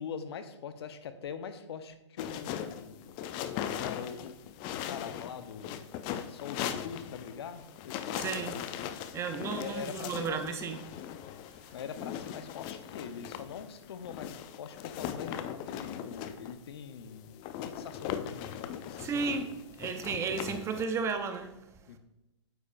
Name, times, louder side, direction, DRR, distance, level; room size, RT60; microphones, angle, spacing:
voice 1, 0.0-3.0 3.8-4.4 4.7-5.8 6.3-8.7 9.6-10.4 11.7-17.4 17.6-19.6 21.9-22.0, left 7 dB, 55° left, 0.9 m, -43 dB
sound 1, 2.2-20.8, left 10 dB, 30° left, 0.5 m, -39 dB
voice 2, 8.1-8.5 9.1-10.8 19.0-19.5 19.8-21.6, right 5 dB, 15° right, 0.6 m, -33 dB
9.1 x 8.1 x 2.6 m
hypercardioid pair, 125°, 16 cm